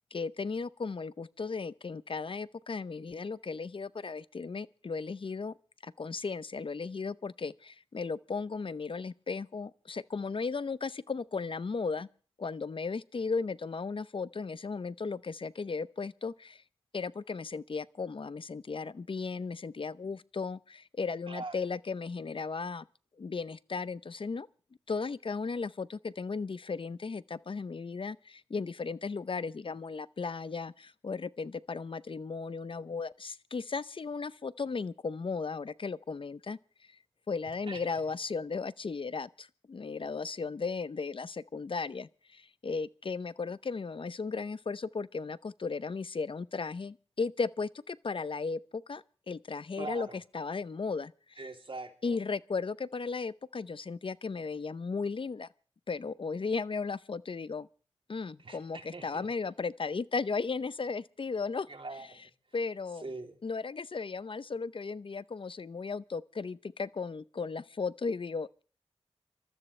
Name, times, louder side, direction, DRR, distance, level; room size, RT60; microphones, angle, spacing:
voice 1, 0.1-5.5 5.8-12.1 12.4-16.6 16.9-22.9 23.2-24.5 24.9-36.6 36.9-37.0 37.3-51.4 52.0-55.5 55.9-57.7 58.1-61.7 62.5-63.1 63.4-68.6, left 4 dB, 55° left, 0.7 m, -36 dB
voice 2, 37.7-38.0 49.8-50.2 51.4-52.2 58.4-59.3 61.7-62.2 63.0-63.4, right 3 dB, 55° right, 3.0 m, -42 dB
27.0 x 13.5 x 3.3 m
cardioid pair, 50°, 11 cm